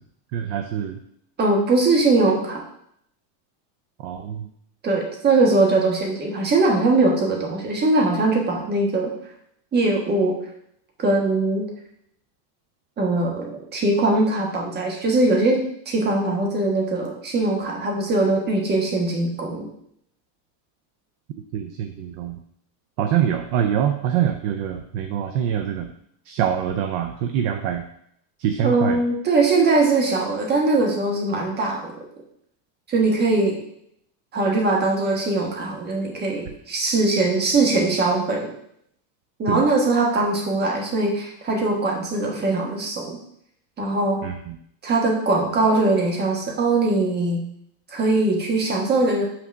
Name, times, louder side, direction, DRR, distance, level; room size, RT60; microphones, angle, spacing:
voice 1, 0.3-1.0 4.0-4.5 21.5-22.4 23.0-25.9 26.3-27.8 28.4-29.0 39.5-39.6 44.2-44.5, right 9 dB, 45° right, 7 dB, 0.5 m, -24 dB
voice 2, 1.4-2.7 4.8-9.1 9.7-10.4 11.0-11.7 13.0-19.7 28.6-31.9 32.9-33.6 34.3-38.5 39.4-43.2 43.8-44.2 44.8-47.5 47.9-49.3, right 2 dB, 20° right, 0 dB, 1.4 m, -21 dB
6.0 x 4.1 x 6.2 m, 0.71 s
cardioid pair, 165°, 49 cm